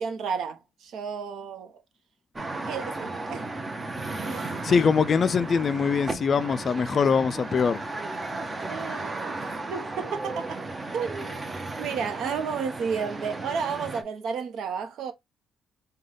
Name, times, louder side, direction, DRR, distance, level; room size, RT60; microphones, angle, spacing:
voice 1, 0.0-1.8 2.6-3.5 4.2-4.7 8.6-10.6 10.9-11.5 11.8-15.1, right 6 dB, 75° right, 0.8 m, -32 dB
sound 1, 2.4-14.0, right 2 dB, 25° right, 0.7 m, -35 dB
voice 2, 4.6-7.8, left 6 dB, 45° left, 0.3 m, -23 dB
5.3 x 2.2 x 3.3 m
cardioid pair, 90°, 0 cm